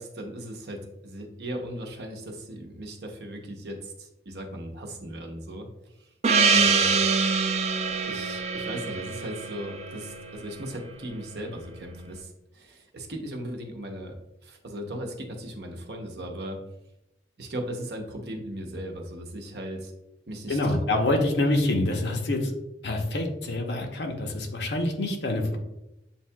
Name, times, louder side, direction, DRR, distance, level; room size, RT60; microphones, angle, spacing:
voice 1, 0.0-5.7 6.5-7.0 8.1-14.2 14.4-16.6 17.4-19.9 20.3-20.8, right 1 dB, 70° right, 3 dB, 0.7 m, -37 dB
Gong, 6.2-11.0, right 4 dB, 35° right, 0.4 m, -25 dB
voice 2, 20.5-22.5 22.8-25.6, left 2 dB, 80° left, 3 dB, 0.7 m, -26 dB
7.2 x 2.7 x 2.2 m, 0.90 s
head